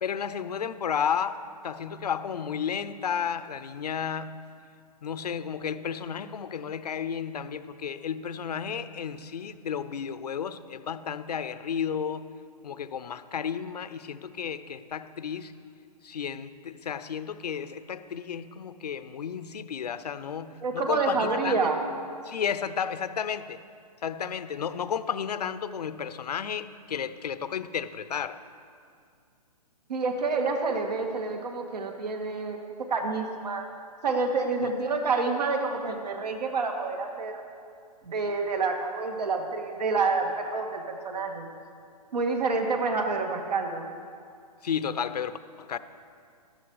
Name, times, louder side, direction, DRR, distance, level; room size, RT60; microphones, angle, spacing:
voice 1, 0.0-4.4 5.0-12.3 12.6-15.5 16.0-21.7 22.2-23.6 24.0-28.4 44.6-45.8, left 7 dB, 75° left, 13 dB, 0.7 m, -32 dB
voice 2, 20.6-21.8 29.9-32.6 32.9-33.7 34.0-37.4 38.0-41.5 42.1-43.9, right 4 dB, 75° right, 3 dB, 2.2 m, -28 dB
13.0 x 12.5 x 4.8 m, 2.3 s
hypercardioid pair, 145°, 21 cm